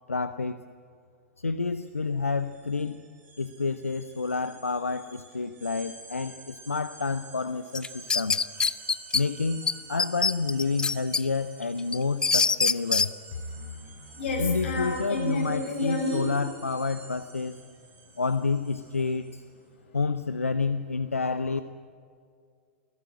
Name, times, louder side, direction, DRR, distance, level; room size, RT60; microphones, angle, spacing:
voice 1, 0.1-0.6 1.4-3.1 3.4-8.4 9.1-13.1 14.4-17.5 18.2-19.4 19.9-21.6, left 4 dB, 85° left, 12 dB, 0.7 m, -29 dB
sound 1, 1.7-1.9 2.2-19.5, right 4 dB, 25° right, 6.3 m, -49 dB
sound 2, 7.7-9.2 9.7-9.8 10.0-11.2 11.6-13.1, left 4 dB, 10° left, 0.5 m, -24 dB
voice 2, 13.4-16.3 19.8-19.9, left 2 dB, 55° left, 3 dB, 6.7 m, -31 dB
28.5 x 16.0 x 8.6 m, 2.2 s
figure-of-eight pair, 100°, 7 cm